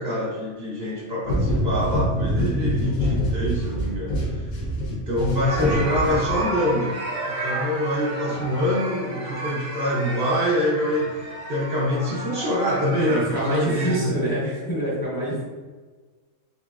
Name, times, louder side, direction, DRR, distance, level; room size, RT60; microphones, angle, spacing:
voice 1, 0.0-4.5 4.9-7.0 7.4-11.1 11.5-14.1 15.3-15.4, left 1 dB, 55° right, -5 dB, 0.8 m, -25 dB
sound 1, 1.2-6.8, equal, 75° left, 1.3 m, -25 dB
sound 2, 5.5-14.0, right 2 dB, 75° right, 1.2 m, -32 dB
voice 2, 12.9-15.4, right 1 dB, 20° left, -7 dB, 0.8 m, -26 dB
3.9 x 2.9 x 2.4 m, 1.3 s
omnidirectional pair, 1.4 m